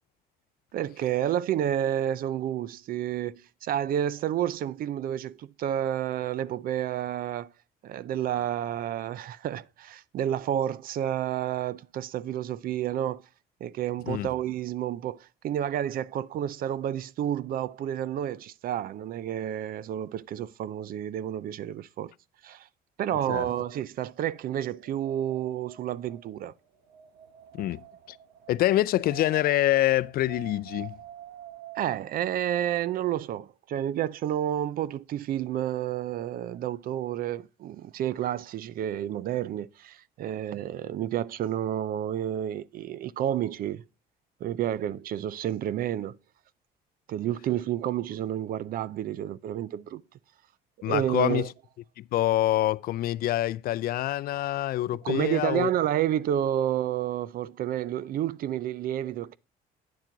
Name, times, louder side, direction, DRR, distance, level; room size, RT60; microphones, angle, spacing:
voice 1, 0.7-7.5 7.8-13.2 13.6-22.1 22.4-22.7 23.0-26.5 31.8-43.8 44.4-46.2 47.1-50.0 50.8-51.5 55.0-59.4, right 11 dB, 60° right, 0.5 m, -30 dB
Wind, 24.3-32.2, right 10 dB, 85° right, 1.3 m, -47 dB
voice 2, 28.5-31.0 50.8-51.5 52.0-55.7, left 14 dB, 60° left, 0.4 m, -26 dB
9.5 x 7.3 x 3.8 m
cardioid pair, 110°, 17 cm